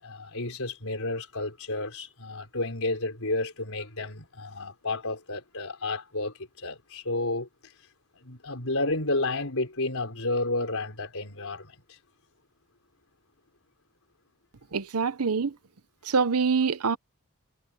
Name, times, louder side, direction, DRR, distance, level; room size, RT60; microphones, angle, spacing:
voice 1, 0.0-7.5 8.1-12.0, left 2 dB, 65° left, 5.5 m, -31 dB
voice 2, 14.7-15.5 16.0-17.0, right 5 dB, 85° right, 0.8 m, -25 dB
head